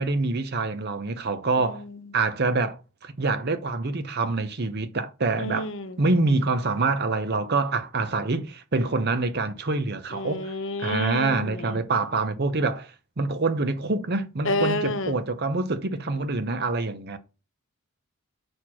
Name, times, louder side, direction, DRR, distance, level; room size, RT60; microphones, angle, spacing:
voice 1, 0.0-1.8 2.1-5.7 6.0-10.5 10.8-12.9 13.2-17.2, right 3 dB, 50° right, 0.8 m, -26 dB
voice 2, 1.6-2.0 5.4-6.0 10.1-11.8 14.4-15.2, left 2 dB, 60° left, 0.9 m, -30 dB
6.5 x 4.4 x 6.2 m
head